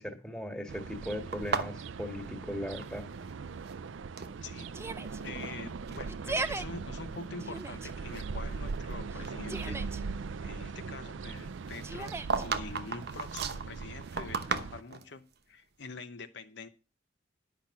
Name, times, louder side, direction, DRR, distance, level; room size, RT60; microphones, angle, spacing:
voice 1, 0.0-3.0, equal, 5° left, 6 dB, 1.7 m, -38 dB
sound 1, 0.7-14.8, right 4 dB, 70° right, 0.4 m, -40 dB
sound 2, 1.3-3.3 3.6-4.4 5.0-5.5 5.9-6.1 6.8-6.9 7.4-8.9 9.2-9.4 11.7-15.1, right 5 dB, 55° right, 1.0 m, -36 dB
Yell, 4.7-5.2 6.1-6.7 7.4-7.9 9.1-10.0 11.8-12.4, right 3 dB, 15° right, 0.5 m, -37 dB
voice 2, 5.2-9.8 10.4-16.7, left 4 dB, 65° left, 7 dB, 0.9 m, -45 dB
10.5 x 5.8 x 7.1 m, 0.32 s
head